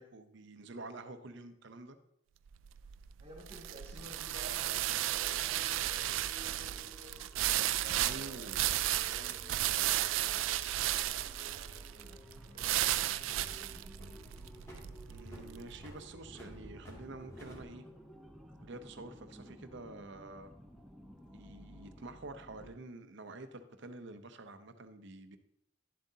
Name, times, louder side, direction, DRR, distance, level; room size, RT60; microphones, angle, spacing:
voice 1, 0.0-2.0 8.0-8.6 15.1-17.8 18.6-20.5 21.3-25.4, right 2 dB, 65° right, 9 dB, 0.7 m, -48 dB
sound 1, 2.5-15.7, right 14 dB, 85° right, 0.3 m, -34 dB
voice 2, 3.2-7.2 7.8-12.1 12.5-13.7, equal, 35° right, -3 dB, 2.4 m, -54 dB
sound 2, 4.0-22.8, equal, ahead, 0.7 m, -54 dB
sound 3, 13.4-17.6, equal, 15° left, 2.4 m, -53 dB
11.0 x 7.5 x 2.8 m, 0.76 s
head